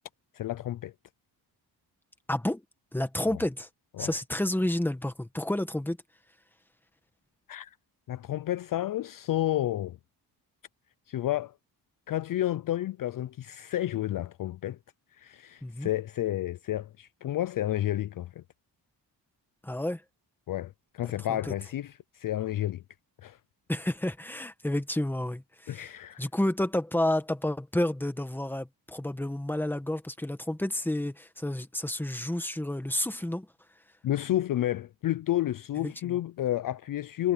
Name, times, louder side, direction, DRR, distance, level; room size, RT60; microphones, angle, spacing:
voice 1, 0.3-0.9 4.0-4.1 7.5-7.8 8.1-10.0 11.1-11.5 12.1-14.8 15.1-18.4 20.5-22.8 23.2-23.4 25.7-26.2 34.0-37.3, left 13 dB, 55° left, 0.5 m, -31 dB
voice 2, 2.3-2.6 2.9-3.7 4.0-6.0 15.6-15.9 19.6-20.0 21.3-21.5 23.7-25.9 26.2-33.5 35.8-36.2, left 1 dB, 5° left, 1.6 m, -30 dB
wide cardioid pair, 150°, 40 cm